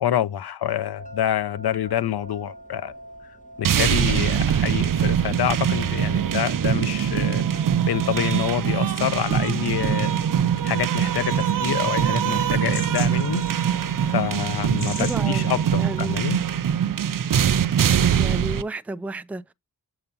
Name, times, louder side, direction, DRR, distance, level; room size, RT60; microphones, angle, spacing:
voice 1, 0.0-2.9 3.6-7.4 7.9-10.1 10.6-13.4 14.1-16.4, left 10 dB, 85° left, 0.7 m, -27 dB
sound 1, 1.0-15.7, equal, 20° left, 1.7 m, -47 dB
sound 2, 3.6-18.6, right 9 dB, 60° right, 0.5 m, -23 dB
sound 3, 9.1-15.3, left 3 dB, 45° left, 4.1 m, -43 dB
voice 2, 15.0-16.2 18.1-19.5, right 2 dB, 5° right, 0.4 m, -32 dB
7.8 x 2.9 x 5.3 m
wide cardioid pair, 90°, 37 cm